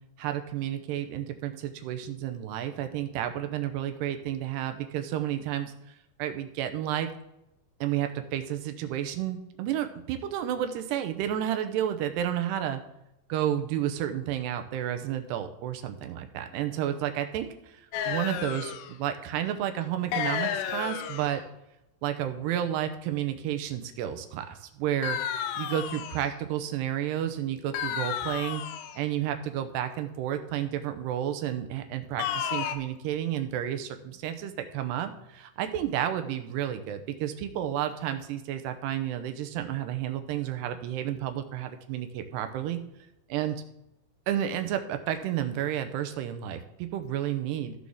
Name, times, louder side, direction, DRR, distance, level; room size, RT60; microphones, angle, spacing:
voice 1, 0.2-5.7 6.2-7.1 7.8-12.8 13.3-21.4 22.0-25.2 25.6-28.6 29.0-42.8 43.3-43.6 44.3-47.7, right 11 dB, 90° right, 7 dB, 2.9 m, -31 dB
sound 1, 17.9-18.9 20.1-21.4 25.0-26.4 27.7-29.0 32.2-32.8, left 9 dB, 90° left, 2.9 m, -32 dB
15.5 x 6.3 x 3.6 m, 0.87 s
omnidirectional pair, 4.8 m